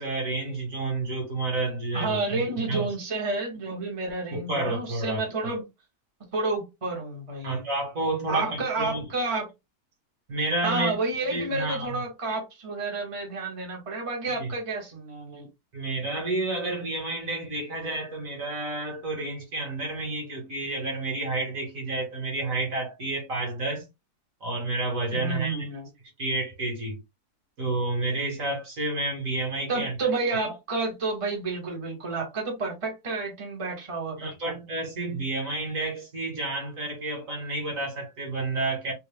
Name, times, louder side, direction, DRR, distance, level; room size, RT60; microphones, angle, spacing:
voice 1, 0.0-2.4 2.7-2.9 4.3-5.3 7.4-9.1 10.3-10.9 11.3-12.0 14.4-14.5 15.7-23.8 24.4-25.7 26.2-27.0 27.6-30.0 34.2-38.9, right 2 dB, 50° right, 1.7 m, -30 dB
voice 2, 1.9-5.6 6.3-7.6 8.3-9.5 10.6-15.5 25.1-25.9 29.7-34.5, right 3 dB, 20° right, 1.1 m, -30 dB
3.4 x 2.4 x 3.4 m
omnidirectional pair, 1.8 m